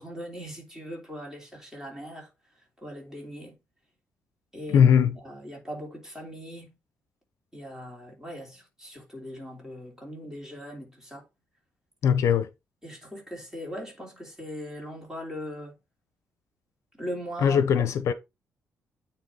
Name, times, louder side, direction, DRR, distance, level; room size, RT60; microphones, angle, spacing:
voice 1, 0.0-2.3 2.8-3.6 4.5-6.7 7.5-11.2 12.8-15.7 17.0-17.7, equal, 10° right, 3.1 m, -40 dB
voice 2, 4.7-5.2 12.0-12.5 17.4-18.1, left 8 dB, 65° left, 0.6 m, -20 dB
9.1 x 3.4 x 4.0 m
cardioid pair, 140°, 6 cm